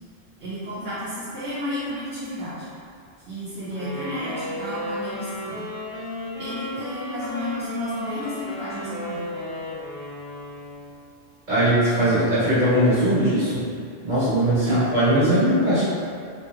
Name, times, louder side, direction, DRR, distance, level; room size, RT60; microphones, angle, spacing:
voice 1, 0.4-2.7 3.3-5.7 6.4-9.2 12.0-12.1 14.5-14.9, equal, 75° right, -13 dB, 1.0 m, -32 dB
Wind instrument woodwind instrument, 3.7-10.9, left 1 dB, 10° right, 1.2 m, -34 dB
voice 2, 11.5-13.6 14.0-15.8, right 1 dB, 45° right, -12 dB, 1.5 m, -20 dB
3.0 x 2.8 x 2.3 m, 2.4 s
omnidirectional pair, 1.2 m